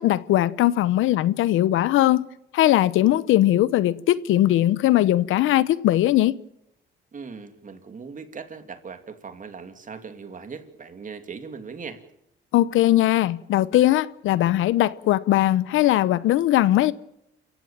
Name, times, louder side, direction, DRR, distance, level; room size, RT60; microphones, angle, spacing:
voice 1, 0.0-2.3 2.5-6.3 12.5-16.9, left 14 dB, 85° left, 0.9 m, -20 dB
voice 2, 7.1-12.0, right 5 dB, 40° right, 2.8 m, -39 dB
28.5 x 15.5 x 7.4 m
cardioid pair, 90°, 20 cm